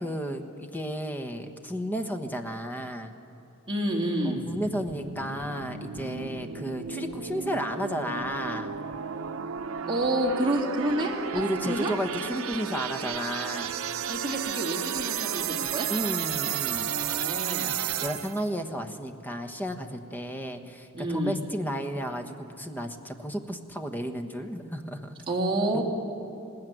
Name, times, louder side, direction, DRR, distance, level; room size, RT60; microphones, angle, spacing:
voice 1, 0.0-3.1 4.2-8.8 11.3-13.7 15.9-16.9 18.0-25.1, equal, 10° left, 6 dB, 1.2 m, -33 dB
voice 2, 3.7-4.4 9.9-11.9 14.1-15.9 16.9-17.8 20.9-21.4 25.3-25.8, right 1 dB, 25° right, -1 dB, 3.1 m, -29 dB
sound 1, 4.5-18.5, right 8 dB, 80° right, 0.7 m, -33 dB
19.5 x 19.0 x 9.3 m, 2.7 s
head